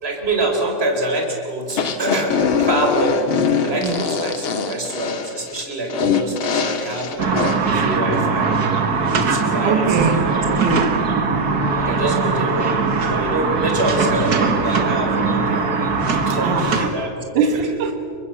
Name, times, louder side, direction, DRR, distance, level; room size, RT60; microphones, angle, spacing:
voice 1, 0.0-3.2 3.6-7.3 7.8-8.6 9.3-10.4 11.8-12.8 13.1-15.7 16.1-17.4, right 1 dB, 20° right, 2 dB, 4.4 m, -25 dB
sound 1, 1.7-7.6, left 6 dB, 45° left, 2.2 m, -22 dB
sound 2, 7.2-16.9, right 4 dB, 35° right, 1.8 m, -20 dB
voice 2, 9.6-11.2 16.2-16.8 17.3-17.9, right 4 dB, 80° right, 7 dB, 3.2 m, -22 dB
28.5 x 24.5 x 7.5 m, 2.4 s
omnidirectional pair, 3.5 m